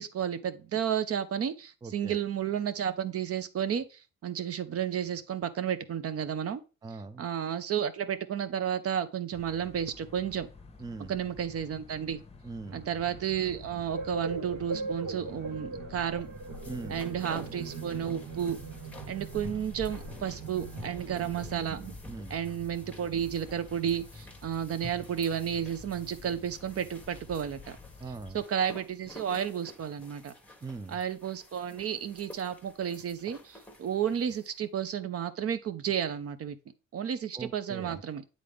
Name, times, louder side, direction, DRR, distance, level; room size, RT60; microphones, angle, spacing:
voice 1, 0.0-6.6 7.2-10.5 11.1-12.2 12.7-16.3 16.9-18.6 19.1-21.8 22.3-27.8 28.3-30.3 30.9-36.6 36.9-38.2, right 9 dB, 50° right, 12 dB, 0.6 m, -32 dB
voice 2, 1.8-2.2 6.8-7.2 10.8-11.2 12.4-12.8 16.7-17.0 22.1-22.3 28.0-28.4 30.6-31.0 37.3-38.0, right 3 dB, 15° right, 11 dB, 0.4 m, -41 dB
sound 1, 9.3-28.4, left 4 dB, 20° left, 0.8 m, -49 dB
sound 2, 12.7-21.9, right 4 dB, 85° right, 1.3 m, -40 dB
sound 3, 16.1-34.6, left 1 dB, 5° left, 1.0 m, -50 dB
8.3 x 3.8 x 3.5 m, 0.31 s
cardioid pair, 90°, 30 cm